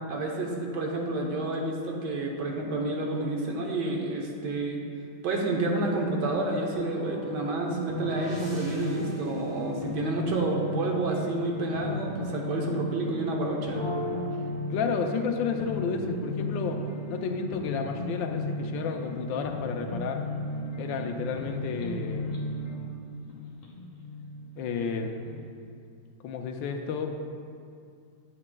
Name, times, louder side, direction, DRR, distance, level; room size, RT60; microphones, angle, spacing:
voice 1, 0.1-4.8 5.2-13.8, right 2 dB, 70° right, 0 dB, 1.5 m, -29 dB
sound 1, 6.3-25.4, left 1 dB, 45° left, 0.4 m, -36 dB
sound 2, 6.7-10.9 13.7-15.3 15.8-17.5, right 1 dB, 45° right, 2.4 m, -40 dB
voice 2, 14.7-16.8 17.1-20.2 20.8-22.5 24.6-25.1 26.2-27.2, left 5 dB, 90° left, 4 dB, 1.3 m, -31 dB
8.7 x 8.4 x 2.2 m, 2.3 s
omnidirectional pair, 2.0 m